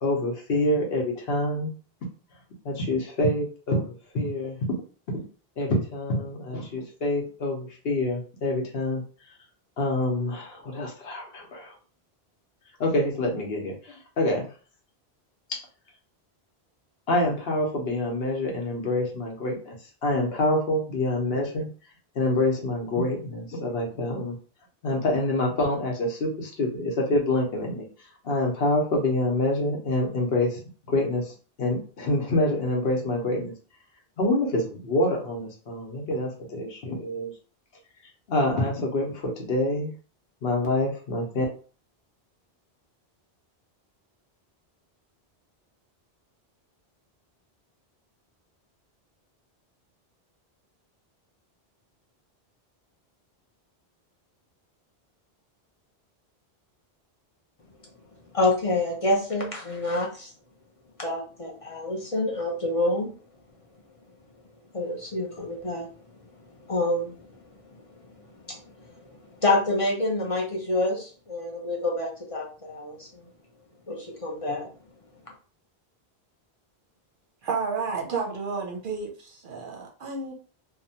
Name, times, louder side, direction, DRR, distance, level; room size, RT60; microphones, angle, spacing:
voice 1, 0.0-1.7 2.6-4.6 5.1-5.2 5.6-9.0 9.8-11.7 12.8-14.5 17.1-19.7 20.0-21.7 22.1-24.4 24.8-27.9 28.2-30.6 30.9-33.5 34.2-37.3 38.3-39.9 40.4-41.4, left 1 dB, 70° left, 1.0 m, -26 dB
voice 2, 58.3-60.3 61.0-63.1 64.7-65.9 66.7-67.2 68.5-68.6 69.4-73.2 73.9-74.7, left 2 dB, 40° left, 0.6 m, -27 dB
voice 3, 77.4-80.3, right 4 dB, 60° right, 0.7 m, -31 dB
2.8 x 2.1 x 2.7 m
omnidirectional pair, 1.1 m